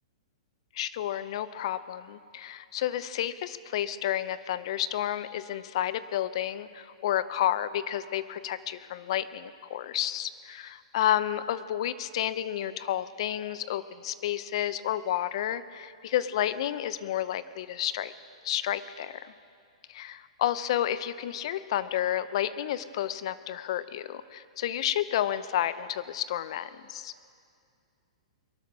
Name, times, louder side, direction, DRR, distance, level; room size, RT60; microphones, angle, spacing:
voice 1, 0.7-18.1 18.4-19.3 19.9-27.1, left 11 dB, 55° left, 15 dB, 0.7 m, -31 dB
22.5 x 12.5 x 4.9 m, 2.3 s
hypercardioid pair, 120°, 3 cm